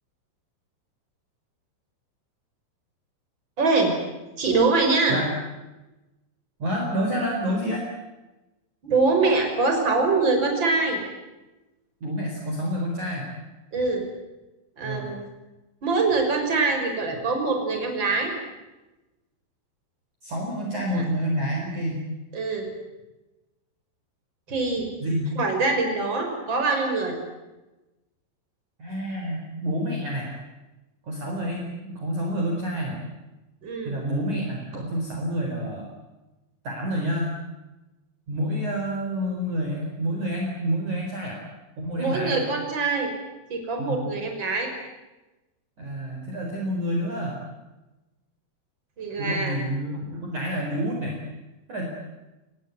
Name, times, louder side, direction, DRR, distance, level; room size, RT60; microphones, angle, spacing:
voice 1, 3.6-3.9 4.4-5.2 8.8-11.0 13.7-14.0 14.8-15.2 15.8-18.3 20.9-21.0 22.3-22.7 24.5-24.9 25.3-27.2 33.6-34.0 42.0-43.1 43.5-44.7 49.0-49.6, right 3 dB, 20° right, 3 dB, 6.2 m, -24 dB
voice 2, 6.6-7.8 12.0-13.3 14.8-15.1 20.2-22.1 25.0-25.3 28.8-30.3 31.1-33.0 33.9-35.9 36.6-37.3 38.3-41.4 41.8-42.4 43.8-44.0 45.8-47.4 49.2-51.2 51.7-51.9, equal, 40° right, 0 dB, 5.3 m, -28 dB
27.5 x 20.0 x 9.5 m, 1.1 s
omnidirectional pair, 5.8 m